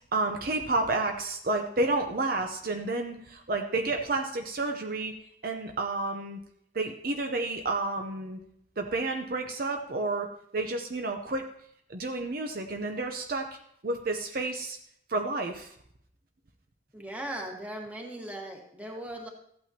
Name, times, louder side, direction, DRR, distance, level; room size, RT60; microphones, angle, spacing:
voice 1, 0.1-5.1 5.4-6.4 6.7-8.4 8.8-10.3 10.5-11.4 11.9-13.5 13.8-14.8 15.1-15.7, right 2 dB, 50° right, 4 dB, 0.7 m, -30 dB
voice 2, 16.9-19.3, right 1 dB, 10° right, 0 dB, 1.5 m, -38 dB
14.0 x 8.8 x 2.9 m, 0.70 s
head